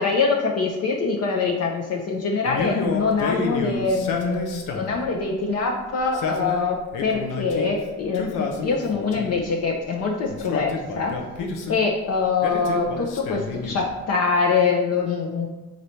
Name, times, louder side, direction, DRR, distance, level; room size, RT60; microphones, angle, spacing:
voice 1, 0.0-11.2 11.7-15.5, left 4 dB, 55° left, 0 dB, 0.6 m, -24 dB
Male speech man speaking, 2.5-5.0 6.0-7.7 8.1-9.4 10.3-11.8 12.4-13.9, left 4 dB, 90° left, 0.7 m, -29 dB
4.0 x 3.2 x 4.2 m, 1.2 s
cardioid pair, 90°, 30 cm